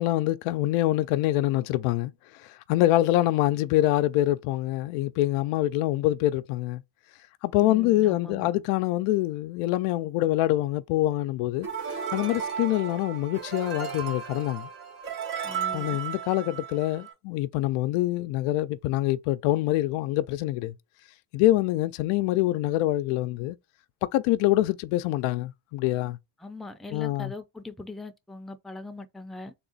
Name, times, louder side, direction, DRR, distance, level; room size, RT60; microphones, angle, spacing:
voice 1, 0.0-2.1 2.7-6.8 7.4-11.7 12.1-14.7 15.7-20.7 21.3-23.6 24.1-26.2 26.9-27.3, left 16 dB, 90° left, 0.6 m, -25 dB
voice 2, 7.6-8.5 15.4-16.0 26.4-29.5, left 2 dB, ahead, 0.5 m, -41 dB
sound 1, 11.6-17.1, right 7 dB, 75° right, 1.7 m, -34 dB
3.7 x 2.3 x 3.9 m
cardioid pair, 90°, 49 cm